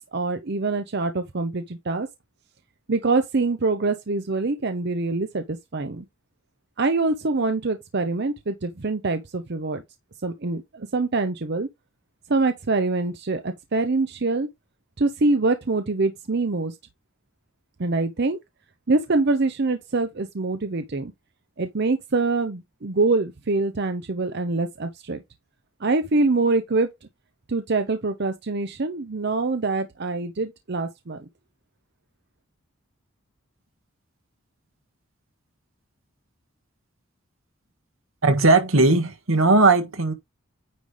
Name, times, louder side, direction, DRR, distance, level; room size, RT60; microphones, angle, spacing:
voice 1, 0.0-2.1 2.9-6.0 6.8-9.8 10.2-11.7 12.3-14.5 15.0-16.7 17.8-18.4 18.9-21.1 21.6-25.2 25.8-26.9 27.5-31.2, right 3 dB, 55° right, 0.7 m, -24 dB
voice 2, 38.2-40.1, right 3 dB, 80° right, 1.6 m, -18 dB
9.5 x 3.3 x 4.9 m
head